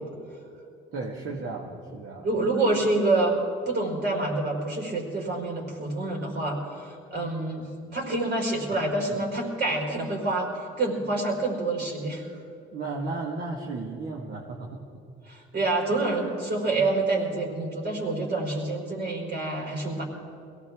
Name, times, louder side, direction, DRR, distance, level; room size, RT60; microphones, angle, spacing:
voice 1, 0.9-2.3 8.7-8.8 12.7-14.8, right 3 dB, 70° right, 0 dB, 1.7 m, -34 dB
voice 2, 2.2-3.3 3.7-10.5 10.8-12.3 15.3-20.0, right 2 dB, 55° right, -1 dB, 4.5 m, -27 dB
22.5 x 17.5 x 3.6 m, 2.6 s
cardioid pair, 90°, 20 cm